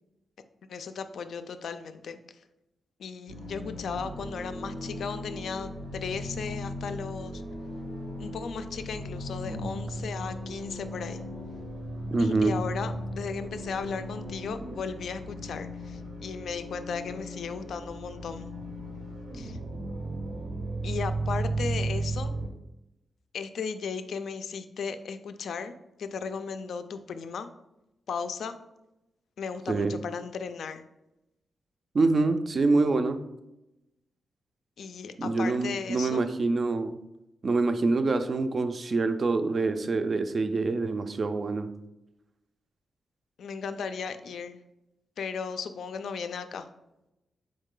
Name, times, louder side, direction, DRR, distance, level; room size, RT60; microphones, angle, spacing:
voice 1, 0.7-2.2 3.0-7.4 8.2-11.2 12.2-18.5 19.3-19.6 20.8-22.3 23.3-25.7 26.0-27.5 28.1-28.6 29.4-30.8 34.8-36.3 43.4-44.6 45.2-46.7, left 5 dB, 75° left, 0.3 m, -36 dB
sound 1, 3.3-22.5, right 1 dB, 85° right, 0.7 m, -36 dB
voice 2, 12.1-12.6 29.7-30.0 31.9-33.2 35.2-37.0 37.4-41.7, right 3 dB, 45° right, 0.3 m, -26 dB
4.0 x 3.1 x 3.7 m
cardioid pair, 105°, 0 cm